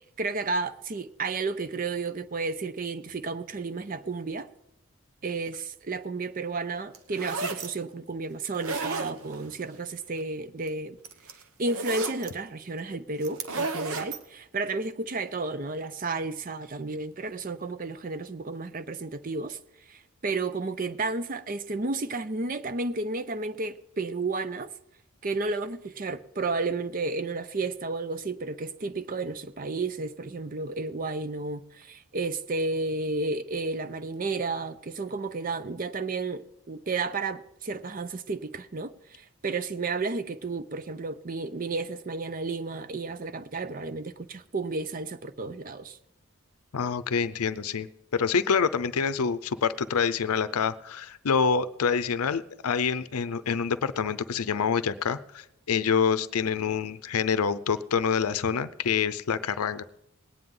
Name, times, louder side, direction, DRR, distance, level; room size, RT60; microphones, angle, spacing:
voice 1, 0.2-4.5 5.2-11.0 11.6-19.6 19.9-24.7 25.2-46.0, right 3 dB, 40° right, 0.6 m, -32 dB
sound 1, 6.9-7.7 8.5-9.5 10.7-10.8 11.0-12.3 13.2-14.2, right 3 dB, 80° right, 1.2 m, -33 dB
voice 2, 46.7-47.9 48.1-59.8, left 6 dB, 90° left, 0.5 m, -26 dB
20.5 x 9.4 x 3.8 m
head